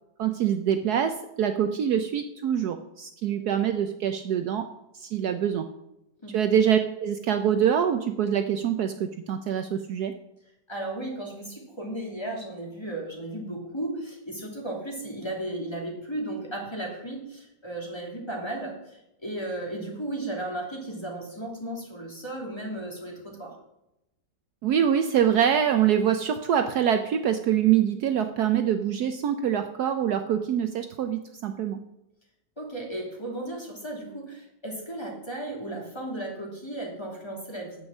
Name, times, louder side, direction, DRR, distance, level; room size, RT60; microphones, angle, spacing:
voice 1, 0.2-4.7 4.9-5.7 6.3-10.1 24.6-31.8, right 9 dB, 70° right, 7 dB, 1.1 m, -25 dB
voice 2, 10.7-23.6 32.6-37.8, right 1 dB, 15° left, -2 dB, 2.8 m, -35 dB
9.6 x 8.0 x 7.2 m, 0.88 s
omnidirectional pair, 1.9 m